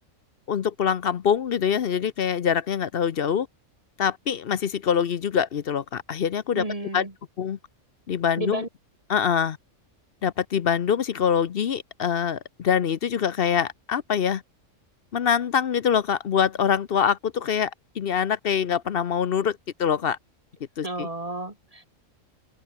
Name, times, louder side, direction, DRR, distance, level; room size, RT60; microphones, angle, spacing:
voice 1, 0.5-3.5 4.0-6.7 6.9-7.1 7.4-7.6 8.1-8.6 9.1-9.6 10.2-14.4 15.1-17.7 18.0-20.2 20.8-21.1, left 7 dB, 55° left, 0.9 m, -24 dB
voice 2, 6.5-7.1 8.4-8.7 20.8-21.9, right 2 dB, 30° right, 2.2 m, -32 dB
omnidirectional pair, 1.3 m